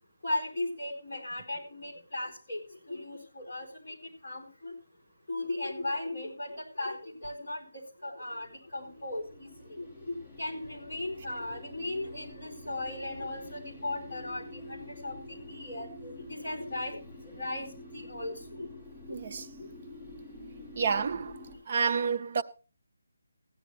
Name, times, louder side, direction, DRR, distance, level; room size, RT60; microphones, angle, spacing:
voice 1, 0.2-2.6 2.9-3.9 4.2-4.7 5.3-7.7 8.0-17.0 17.4-18.7, left 2 dB, 30° left, 4.6 m, -37 dB
sound 1, 8.4-21.6, left 1 dB, 5° left, 5.4 m, -48 dB
voice 2, 19.1-19.5 20.8-21.4 21.7-22.4, right 5 dB, 25° right, 0.5 m, -29 dB
16.0 x 10.0 x 3.1 m
hypercardioid pair, 175°, 0 cm